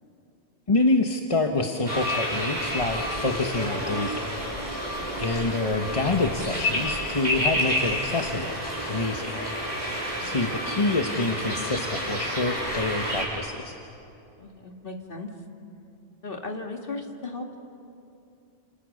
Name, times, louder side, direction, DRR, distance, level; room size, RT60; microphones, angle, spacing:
voice 1, 0.7-4.3 5.2-9.4 10.2-13.7, left 2 dB, 30° left, 3 dB, 1.2 m, -27 dB
sound 1, 1.8-13.2, equal, 30° right, 6.6 m, -30 dB
voice 2, 10.2-10.6 14.4-15.3 16.2-17.6, left 3 dB, 50° left, 2 dB, 2.4 m, -37 dB
30.0 x 28.0 x 6.5 m, 2.7 s
omnidirectional pair, 1.2 m